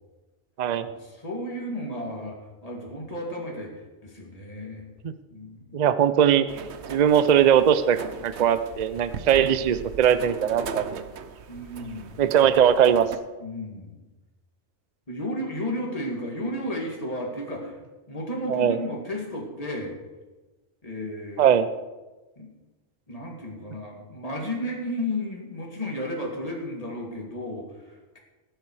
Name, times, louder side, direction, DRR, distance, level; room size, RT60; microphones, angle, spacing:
voice 1, 0.8-3.7 4.0-4.8 5.3-5.8 11.5-12.2 13.4-14.0 15.1-17.8 18.1-20.0 20.8-21.5 22.4-22.5 23.1-28.2, left 1 dB, 30° left, -1 dB, 2.7 m, -33 dB
voice 2, 5.7-6.5 6.9-8.0 8.2-11.0 12.2-13.1 18.5-18.8 21.4-21.7, right 9 dB, 45° right, 12 dB, 0.6 m, -20 dB
sound 1, 6.5-13.2, right 6 dB, 60° right, 1.0 m, -38 dB
19.5 x 7.9 x 4.8 m, 1.2 s
omnidirectional pair, 1.3 m